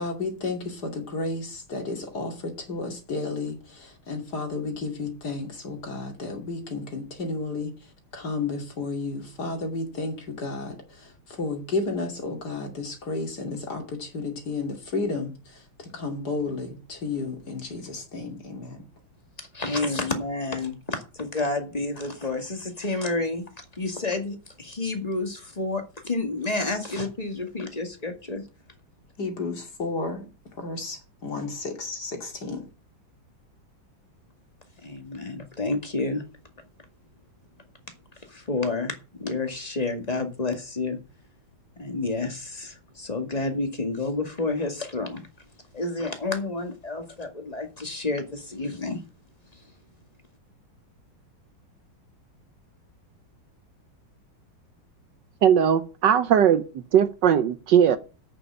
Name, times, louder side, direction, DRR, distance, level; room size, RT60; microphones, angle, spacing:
voice 1, 0.0-18.8 29.2-32.7, left 3 dB, 50° left, 3.0 m, -32 dB
voice 2, 19.4-28.4 34.8-36.2 38.2-41.0 41.8-45.3 45.7-49.0 49.5-49.6, left 3 dB, 20° left, 2.0 m, -30 dB
voice 3, 55.4-56.6 56.9-58.0, right 8 dB, 70° right, 1.3 m, -19 dB
8.5 x 7.0 x 8.8 m
omnidirectional pair, 2.2 m